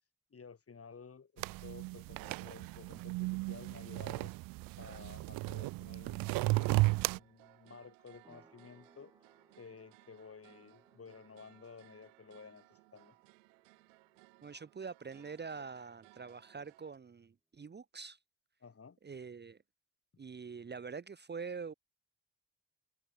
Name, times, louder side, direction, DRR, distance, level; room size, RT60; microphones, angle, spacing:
voice 1, 0.3-4.3 4.8-9.1 9.6-13.2 15.1-15.2 18.6-19.0, left 5 dB, 40° left, 4.4 m, -54 dB
sound 1, 1.4-7.2, right 22 dB, 70° right, 0.5 m, -34 dB
sound 2, 6.5-17.0, right 27 dB, 85° right, 5.2 m, -63 dB
sound 3, 8.2-16.6, right 1 dB, 10° right, 5.9 m, -71 dB
voice 2, 14.4-18.2 19.0-19.6 20.2-21.7, right 5 dB, 30° right, 1.0 m, -45 dB
hypercardioid pair, 50°, 36 cm